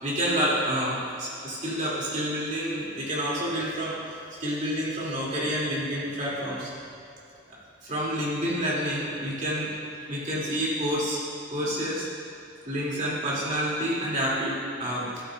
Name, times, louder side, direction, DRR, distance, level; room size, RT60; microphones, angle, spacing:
voice 1, 0.0-4.0 4.4-6.7 7.5-9.7 10.1-11.2 11.5-12.1 12.6-14.5 14.8-15.1, equal, 35° right, -6 dB, 2.4 m, -28 dB
13.5 x 11.5 x 2.4 m, 2.7 s
head